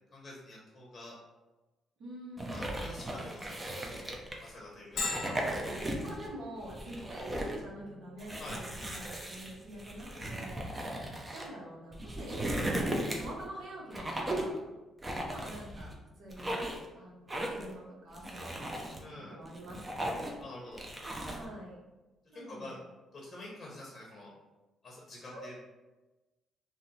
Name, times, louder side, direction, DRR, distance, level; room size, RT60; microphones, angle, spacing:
voice 1, 0.1-1.2 2.5-4.1 4.4-5.3 8.4-8.6 19.0-19.4 20.4-20.8 22.3-22.8 23.1-24.3 24.8-25.6, left 1 dB, 35° left, -3 dB, 0.8 m, -47 dB
voice 2, 2.0-2.8 5.2-11.0 11.3-14.6 15.2-16.6 17.0-20.4 21.2-21.8 22.3-22.8 25.3-25.5, right 1 dB, 70° right, -3 dB, 0.7 m, -46 dB
sound 1, 2.4-4.5 4.9-6.3 6.6-7.6 8.2-11.5 11.9-13.4 13.9-14.6 15.0-15.9 16.3-16.9 17.3-17.7 18.1-19.0 19.5-20.4 20.8-21.4, right 1 dB, 20° right, 0.5 m, -37 dB
Bell, 5.0-20.4, left 3 dB, 65° left, 0.5 m, -48 dB
2.7 x 2.0 x 3.9 m, 1.1 s
cardioid pair, 90°, 0 cm